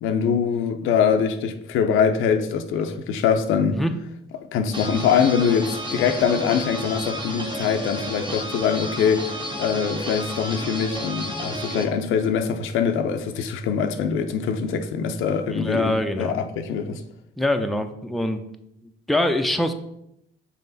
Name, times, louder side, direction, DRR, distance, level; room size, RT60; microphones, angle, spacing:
voice 1, 0.0-3.8 4.5-9.3 9.6-17.0, left 7 dB, 90° left, 0.6 m, -23 dB
sound 1, 4.7-11.8, equal, 25° right, 1.2 m, -32 dB
voice 2, 15.5-16.4 17.4-18.4 18.8-19.7, left 1 dB, ahead, 0.5 m, -24 dB
5.8 x 4.1 x 4.0 m
cardioid pair, 90°, 20 cm